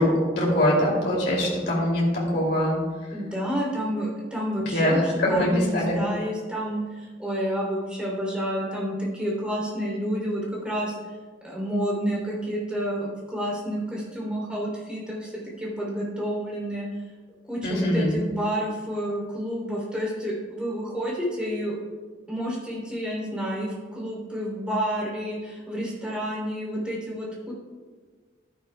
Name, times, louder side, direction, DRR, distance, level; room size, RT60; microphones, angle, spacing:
voice 1, 0.0-2.7 4.7-6.0 17.6-18.1, left 1 dB, 60° left, -4 dB, 2.8 m, -23 dB
voice 2, 3.1-11.0 11.4-15.3 15.6-16.9 17.4-21.8 22.3-27.5, equal, 5° right, -5 dB, 3.2 m, -29 dB
12.0 x 10.5 x 2.3 m, 1.5 s
head